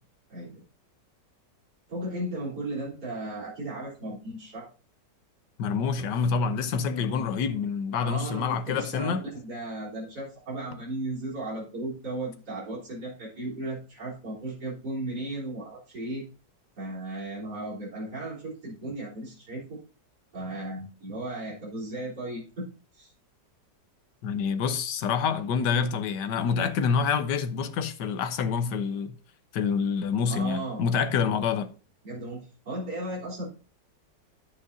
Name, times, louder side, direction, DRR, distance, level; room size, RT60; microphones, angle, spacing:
voice 1, 0.3-0.6 1.9-4.7 7.0-7.3 8.0-16.2 16.8-19.8 20.3-22.7 22.9-23.1 30.2-30.8 32.0-33.5, right 1 dB, 60° right, 4.3 m, -35 dB
voice 2, 5.6-9.2 24.2-29.1 29.5-31.7, left 6 dB, 75° left, 1.5 m, -27 dB
10.0 x 8.5 x 2.7 m
omnidirectional pair, 1.9 m